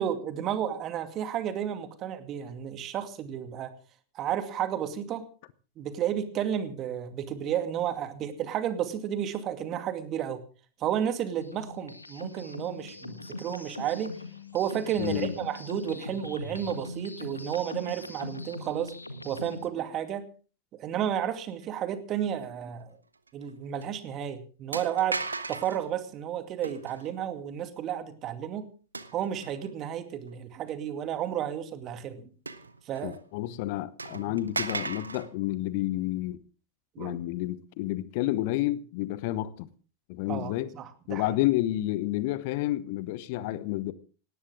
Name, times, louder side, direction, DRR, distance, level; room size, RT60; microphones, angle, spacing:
voice 1, 0.0-3.7 4.1-5.2 5.8-10.4 10.8-14.1 14.5-18.9 19.2-20.2 20.8-22.9 23.3-25.2 25.5-28.7 29.1-32.3 32.9-33.2 34.2-34.4 37.0-37.2 40.3-41.2, right 10 dB, 35° right, 2.3 m, -32 dB
sound 1, 11.4-19.7, left 2 dB, 85° left, 1.7 m, -41 dB
voice 2, 15.0-15.3 33.0-36.4 37.0-39.7 40.1-40.7 41.1-43.9, left 15 dB, 50° left, 1.0 m, -30 dB
sound 2, 23.3-23.5 23.8-23.9 24.7-25.8 26.6-27.1 28.9-29.7 30.3-30.4 32.5-33.2 33.5-33.6 34.0-35.3, right 3 dB, 80° right, 1.2 m, -36 dB
18.5 x 17.5 x 3.6 m
figure-of-eight pair, 90°, 0 cm